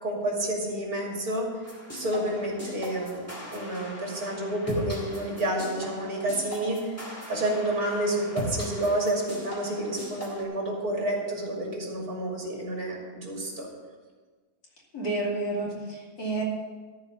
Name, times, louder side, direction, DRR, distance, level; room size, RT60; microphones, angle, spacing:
voice 1, 0.0-1.5 1.9-7.0 7.3-13.7, right 1 dB, 75° right, -1 dB, 3.0 m, -29 dB
sound 1, 1.6-10.4, equal, 10° left, 2.3 m, -39 dB
voice 2, 14.9-16.4, right 2 dB, 80° left, -4 dB, 3.2 m, -30 dB
13.5 x 4.8 x 8.4 m, 1.4 s
omnidirectional pair, 1.6 m